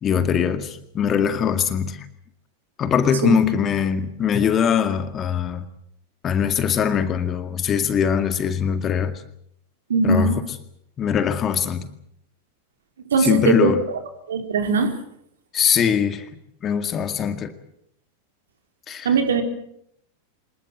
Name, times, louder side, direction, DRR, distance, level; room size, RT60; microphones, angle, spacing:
voice 1, 0.0-2.1 2.8-5.7 6.2-9.2 10.0-10.3 11.0-11.9 13.2-13.8 15.5-16.3 16.6-17.5 18.9-19.1, left 7 dB, 25° left, 10 dB, 2.1 m, -21 dB
voice 2, 9.9-10.3 13.1-14.0 14.3-14.9 19.0-19.4, right 4 dB, 65° right, 6 dB, 4.2 m, -20 dB
26.0 x 20.5 x 7.8 m, 0.72 s
figure-of-eight pair, 90°, 0 cm